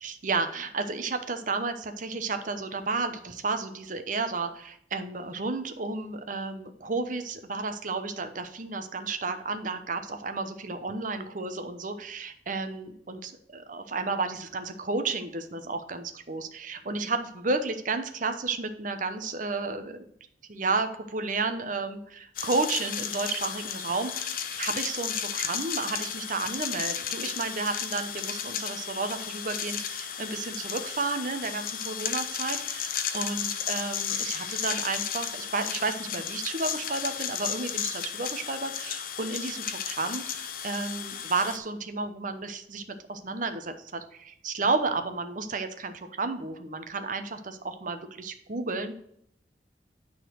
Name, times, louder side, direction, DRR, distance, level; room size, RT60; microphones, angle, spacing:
voice 1, 0.0-20.0 20.5-24.3 24.6-48.9, right 3 dB, 50° right, 8 dB, 0.9 m, -32 dB
sound 1, 22.4-41.6, left 8 dB, 55° left, 0.8 m, -34 dB
9.3 x 4.1 x 6.4 m, 0.71 s
head